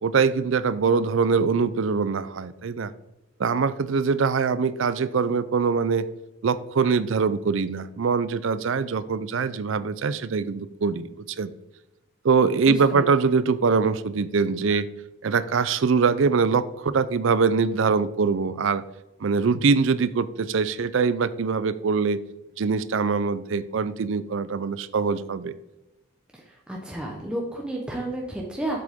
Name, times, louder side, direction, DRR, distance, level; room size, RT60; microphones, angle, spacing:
voice 1, 0.0-2.9 3.4-6.1 6.4-11.5 12.2-14.9 15.2-18.8 19.2-22.2 22.6-25.5, right 5 dB, 60° right, 16 dB, 0.4 m, -23 dB
voice 2, 12.7-13.0 26.3-28.8, right 1 dB, 5° right, -2 dB, 0.9 m, -32 dB
7.7 x 7.6 x 3.6 m, 1.0 s
head